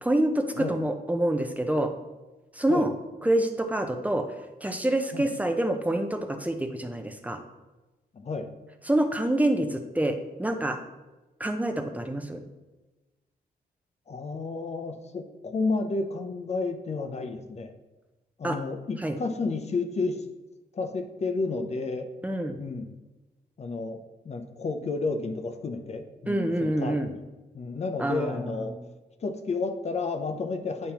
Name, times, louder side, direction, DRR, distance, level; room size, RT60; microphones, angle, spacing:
voice 1, 0.0-1.9 2.5-2.9 3.2-4.3 4.6-7.4 8.9-10.8 11.4-12.4 18.4-18.6 19.0-19.2 22.2-22.6 26.3-27.1 28.0-28.7, right 1 dB, 10° right, 5 dB, 0.6 m, -27 dB
voice 2, 8.1-8.5 14.1-17.7 18.4-20.2 20.7-22.1 22.6-23.0 23.6-27.2 27.5-28.8 29.2-30.9, left 3 dB, 40° left, 7 dB, 0.7 m, -31 dB
8.6 x 5.4 x 2.9 m, 1.1 s
cardioid pair, 105°, 16 cm